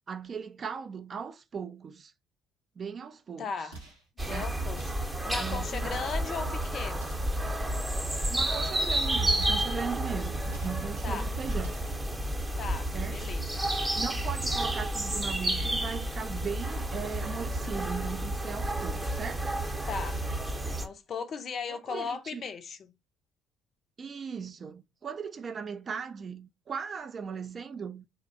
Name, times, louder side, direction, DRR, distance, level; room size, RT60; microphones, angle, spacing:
voice 1, 0.1-2.1 2.8-3.5 4.2-4.5 5.3-6.0 8.3-11.8 12.9-13.2 13.9-19.5 21.7-22.4 24.0-28.1, right 6 dB, 40° right, 0.3 m, -38 dB
voice 2, 3.4-3.8 4.3-7.2 11.0-11.3 12.6-13.4 14.0-14.3 19.9-20.2 20.8-22.9, left 5 dB, 50° left, 0.4 m, -37 dB
sound 1, 3.7-4.1 4.7-5.2 5.9-6.3 6.9-7.4 8.3-8.7 9.4-9.8 10.5-10.9 11.6-12.0, right 3 dB, 85° right, 1.0 m, -47 dB
sound 2, 4.2-20.9, right 1 dB, 15° right, 0.7 m, -31 dB
2.7 x 2.1 x 2.6 m
figure-of-eight pair, 50°, 0 cm